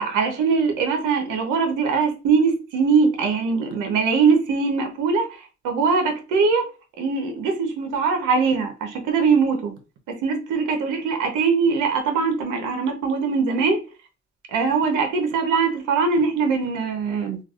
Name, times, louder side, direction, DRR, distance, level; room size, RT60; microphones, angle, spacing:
voice 1, 0.0-5.4 5.6-6.7 7.0-9.7 10.1-13.8 14.5-17.4, right 5 dB, 85° right, 0.9 m, -21 dB
3.3 x 2.3 x 2.4 m
cardioid pair, 90°, 30 cm